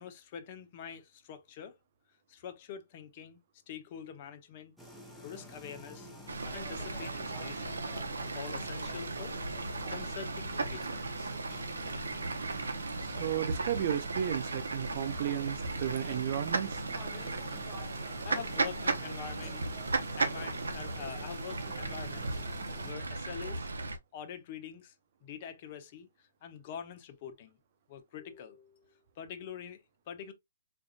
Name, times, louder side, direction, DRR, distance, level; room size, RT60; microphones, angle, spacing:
voice 1, 0.0-1.8 2.3-3.4 3.7-4.7 5.2-6.1 6.5-7.8 8.3-9.4 9.9-10.9 11.2-11.3 18.2-19.6 20.2-22.4 22.8-23.7 24.1-24.9 25.2-26.1 26.4-27.6 27.9-30.3, left 8 dB, 35° left, 0.7 m, -45 dB
sound 1, 4.8-22.9, left 1 dB, ahead, 0.9 m, -49 dB
Fowl / Bird, 6.3-24.0, right 3 dB, 85° right, 0.8 m, -36 dB
voice 2, 13.0-16.8, right 10 dB, 45° right, 0.5 m, -33 dB
4.5 x 2.5 x 2.4 m
hypercardioid pair, 145°, 0 cm